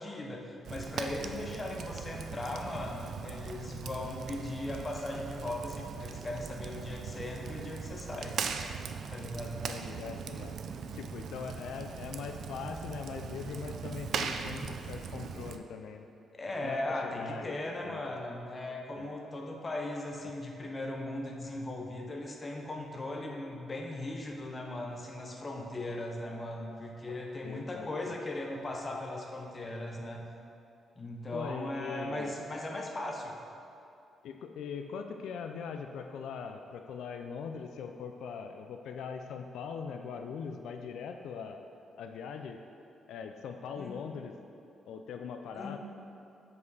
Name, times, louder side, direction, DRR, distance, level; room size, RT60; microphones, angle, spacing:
voice 1, 0.0-8.4 9.1-9.7 16.3-30.2 31.0-33.3 43.8-44.0 45.6-45.8, left 1 dB, 20° left, 1 dB, 0.6 m, -38 dB
Fire, 0.6-15.6, right 6 dB, 55° right, 0.3 m, -40 dB
voice 2, 9.7-10.6 10.9-16.1 16.6-17.5 17.8-18.2 18.9-19.1 20.2-20.3 27.4-28.2 31.3-32.4 34.2-41.6 42.0-42.6 43.1-44.3 44.9-45.8, left 6 dB, 80° left, 6 dB, 0.3 m, -41 dB
7.0 x 5.3 x 4.1 m, 2.7 s
cardioid pair, 170°, 0 cm